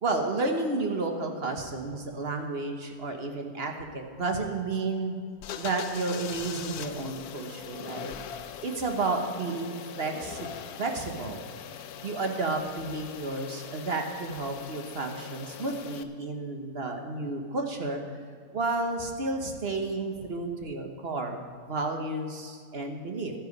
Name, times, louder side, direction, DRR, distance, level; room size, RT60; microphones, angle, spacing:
voice 1, 0.0-5.2 5.6-8.1 8.6-10.5 10.8-11.4 12.0-18.0 18.5-23.3, right 3 dB, 45° right, 4 dB, 1.3 m, -31 dB
sound 1, 5.4-16.0, left 8 dB, 80° left, 1.2 m, -41 dB
12.0 x 10.5 x 5.3 m, 2.1 s
omnidirectional pair, 1.6 m